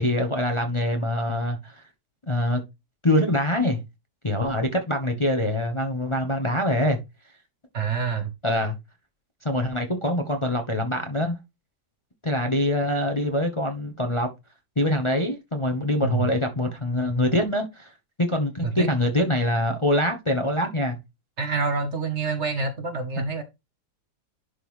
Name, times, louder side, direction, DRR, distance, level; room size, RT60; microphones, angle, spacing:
voice 1, 0.0-1.8 2.3-2.6 3.0-3.8 4.2-7.0 8.4-8.8 9.4-11.4 12.2-14.3 14.8-17.9 18.2-21.0, left 1 dB, 20° left, 0.9 m, -24 dB
voice 2, 7.7-8.3 16.0-16.3 18.6-18.9 21.4-23.4, right 4 dB, 50° right, 1.2 m, -27 dB
11.0 x 3.8 x 3.2 m
omnidirectional pair, 1.8 m